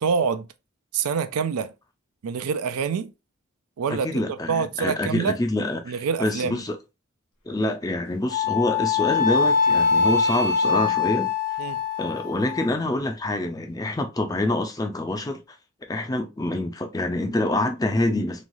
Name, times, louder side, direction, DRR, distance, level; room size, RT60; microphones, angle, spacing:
voice 1, 0.0-0.5 0.9-1.7 2.2-3.1 3.8-5.4 5.9-6.6 11.6-11.8, right 6 dB, 85° right, 0.4 m, -26 dB
voice 2, 3.9-6.8 7.5-11.3 12.0-15.4 15.9-18.4, left 1 dB, 15° left, 0.4 m, -26 dB
Wind instrument woodwind instrument, 8.3-12.7, left 5 dB, 65° left, 1.2 m, -23 dB
3.1 x 2.3 x 2.6 m
head